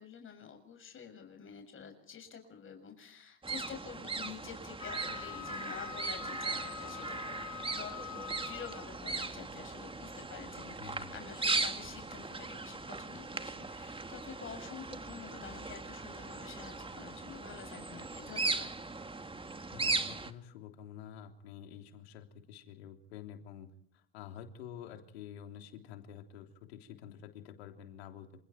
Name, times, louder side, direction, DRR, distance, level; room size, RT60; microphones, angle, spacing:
voice 1, 0.0-7.4 7.7-18.7, left 7 dB, 40° left, 5 dB, 6.8 m, -49 dB
sound 1, 3.4-20.3, right 3 dB, 15° right, 2.6 m, -38 dB
Wind instrument woodwind instrument, 4.8-9.0, left 14 dB, 65° left, 2.7 m, -45 dB
voice 2, 10.8-11.1 19.7-28.4, left 9 dB, 85° left, 5 dB, 3.4 m, -49 dB
28.5 x 27.5 x 4.5 m, 0.67 s
hypercardioid pair, 75°, 31 cm